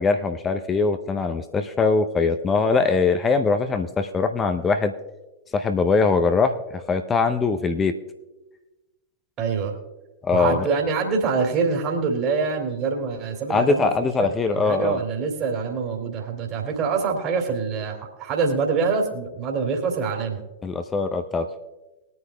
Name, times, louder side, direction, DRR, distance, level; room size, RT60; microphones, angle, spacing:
voice 1, 0.0-4.9 5.5-6.6 6.9-7.9 10.2-10.7 13.5-15.0 20.6-21.5, left 4 dB, 20° left, 8 dB, 0.7 m, -22 dB
voice 2, 9.4-9.8 10.3-20.4, right 5 dB, 35° right, 2 dB, 2.5 m, -25 dB
21.0 x 9.5 x 2.3 m, 1.1 s
figure-of-eight pair, 90°, 0 cm